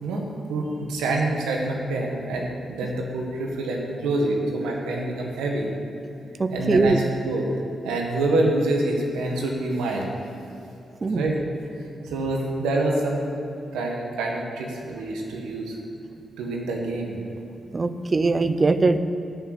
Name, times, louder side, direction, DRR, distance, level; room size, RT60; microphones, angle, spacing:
voice 1, 0.0-5.7 6.5-7.5 7.8-10.1 11.1-11.4 12.0-13.2 13.7-15.8 16.4-17.2, right 2 dB, 85° right, 0 dB, 1.7 m, -26 dB
voice 2, 6.4-7.0 11.0-11.2 17.7-19.0, right 3 dB, 40° right, 11 dB, 0.7 m, -21 dB
12.0 x 6.7 x 8.1 m, 2.8 s
supercardioid pair, 45°, 0 cm